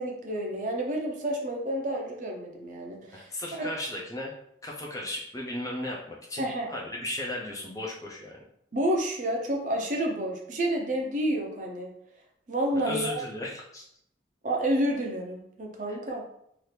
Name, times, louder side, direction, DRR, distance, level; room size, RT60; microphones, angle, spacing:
voice 1, 0.0-3.3 3.6-3.7 6.4-6.7 8.7-11.9 12.5-13.2 14.4-16.2, right 1 dB, 45° right, 0 dB, 0.6 m, -29 dB
voice 2, 3.1-4.3 4.6-8.4 12.8-13.8 15.9-16.0, left 1 dB, 20° left, -1 dB, 0.5 m, -35 dB
2.8 x 2.5 x 3.2 m, 0.73 s
head